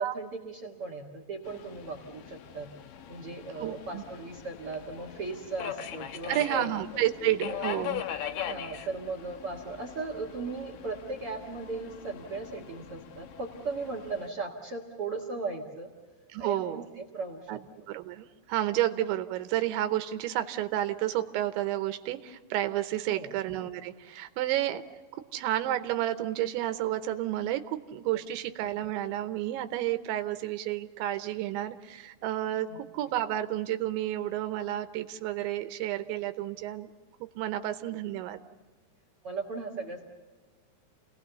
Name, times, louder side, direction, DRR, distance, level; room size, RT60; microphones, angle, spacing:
voice 1, 0.0-2.7 3.1-7.6 8.5-15.9 16.4-17.5 23.1-23.3 32.7-32.8 37.9-38.0 39.2-40.0, right 3 dB, 55° right, -1 dB, 1.6 m, -37 dB
Subway metro underground, 1.4-14.3, left 10 dB, 75° left, 2.1 m, -41 dB
voice 2, 3.6-4.0 6.3-8.0 16.3-16.9 17.5-17.6 17.9-24.8 25.1-36.9 37.4-38.4, right 13 dB, 80° right, 9 dB, 3.2 m, -31 dB
29.5 x 19.0 x 6.9 m, 1.4 s
omnidirectional pair, 5.3 m